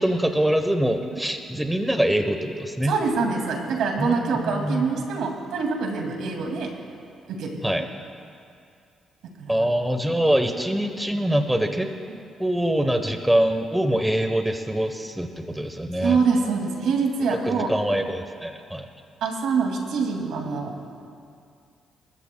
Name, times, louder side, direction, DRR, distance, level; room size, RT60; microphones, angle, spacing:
voice 1, 0.0-3.0 4.0-4.9 7.6-7.8 9.5-11.9 12.4-16.2 17.3-18.9, right 1 dB, 5° right, 6 dB, 1.0 m, -24 dB
voice 2, 2.8-6.7 7.3-7.6 9.4-9.7 12.1-12.2 16.0-17.7 19.2-20.7, right 5 dB, 80° right, 2 dB, 2.3 m, -25 dB
28.0 x 13.5 x 2.3 m, 2.4 s
cardioid pair, 90°, 0 cm